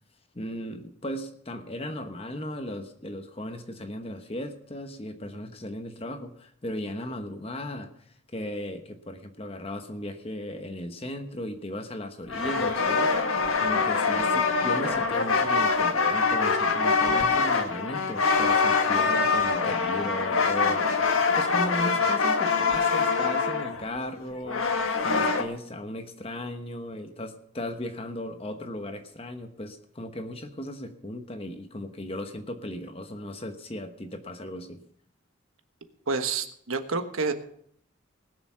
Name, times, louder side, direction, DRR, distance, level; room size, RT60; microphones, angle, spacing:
voice 1, 0.3-34.8, left 1 dB, 30° left, 7 dB, 1.1 m, -36 dB
sound 1, 12.3-25.4, left 4 dB, 85° left, 1.5 m, -24 dB
voice 2, 36.1-37.3, right 4 dB, 90° right, 7 dB, 1.3 m, -28 dB
19.5 x 7.0 x 5.8 m, 0.65 s
head